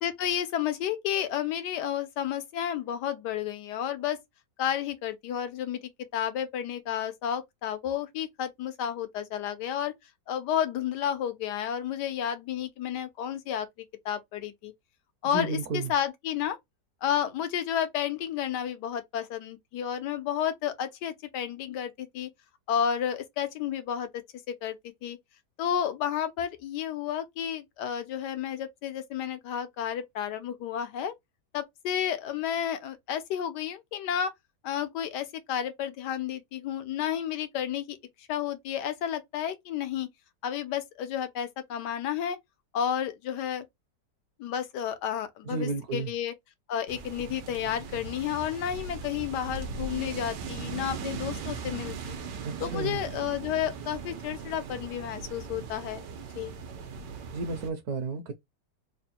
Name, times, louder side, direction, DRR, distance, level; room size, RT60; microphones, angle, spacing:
voice 1, 0.0-4.2 4.6-9.9 10.3-13.7 14.0-14.7 15.2-16.6 17.0-22.3 22.7-24.1 24.5-24.8 25.0-25.2 25.6-31.1 31.5-34.3 34.6-38.0 38.3-40.1 40.4-42.4 42.7-43.7 44.4-46.3 46.7-52.2 52.6-56.1 56.3-56.5, left 9 dB, 75° left, 1.3 m, -31 dB
voice 2, 15.2-15.9 45.4-46.1 52.4-53.0 57.3-58.3, right 3 dB, 65° right, 1.2 m, -32 dB
sound 1, 46.9-57.7, right 5 dB, 85° right, 1.4 m, -39 dB
3.6 x 2.2 x 4.2 m
omnidirectional pair, 1.8 m